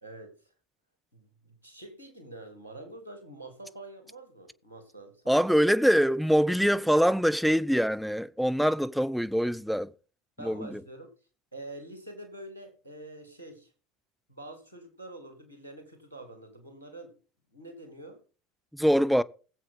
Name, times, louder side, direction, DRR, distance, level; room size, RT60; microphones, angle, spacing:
voice 1, 0.0-0.4 1.1-5.4 10.4-11.1 11.5-13.7 14.3-17.1 17.5-18.2, right 2 dB, 85° left, 3.1 m, -46 dB
voice 2, 5.3-9.9 10.4-10.8 18.7-19.2, equal, ahead, 0.7 m, -24 dB
20.0 x 7.8 x 3.9 m
figure-of-eight pair, 70°, 0 cm